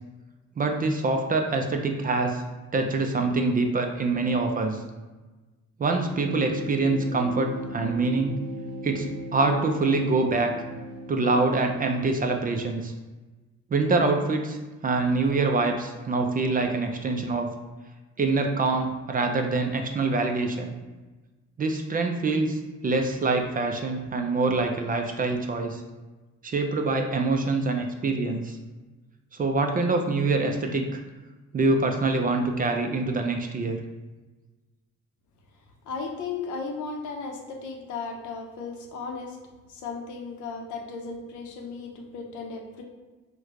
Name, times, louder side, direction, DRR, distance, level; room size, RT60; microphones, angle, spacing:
voice 1, 0.6-2.4 2.7-4.8 5.8-8.4 8.8-10.6 11.1-12.9 13.7-17.5 18.2-20.7 21.6-25.8 26.4-28.6 29.4-31.0 31.5-33.8, right 3 dB, 30° right, 4 dB, 0.4 m, -25 dB
sound 1, 6.0-12.6, right 1 dB, 75° right, 0.6 m, -38 dB
voice 2, 35.8-39.4 39.7-42.8, left 4 dB, 75° left, 2 dB, 0.6 m, -35 dB
3.0 x 2.2 x 3.6 m, 1.2 s
cardioid pair, 90°, 30 cm